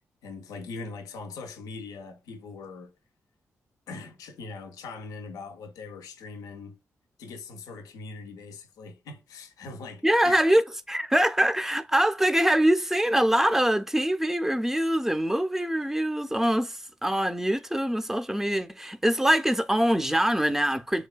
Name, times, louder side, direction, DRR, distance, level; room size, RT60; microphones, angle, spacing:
voice 1, 0.2-2.9 3.9-6.8 7.2-10.4, left 3 dB, 80° left, 0.4 m, -41 dB
voice 2, 10.0-21.1, right 1 dB, 5° right, 0.4 m, -24 dB
3.2 x 2.2 x 2.2 m
supercardioid pair, 45°, 6 cm